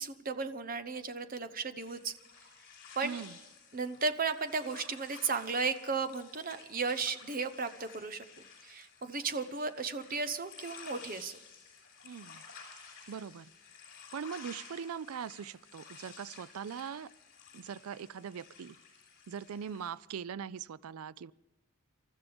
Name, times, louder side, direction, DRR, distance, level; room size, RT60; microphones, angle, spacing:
voice 1, 0.0-2.1 3.0-3.2 3.7-8.2 8.6-11.4, right 4 dB, 40° right, 0.9 m, -35 dB
sound 1, 1.8-19.9, left 5 dB, 40° left, 5.6 m, -53 dB
voice 2, 3.0-3.4 12.0-12.4 13.1-13.5 14.1-17.1 17.5-18.8 19.3-21.3, right 7 dB, 80° right, 0.4 m, -41 dB
27.5 x 13.5 x 3.5 m
head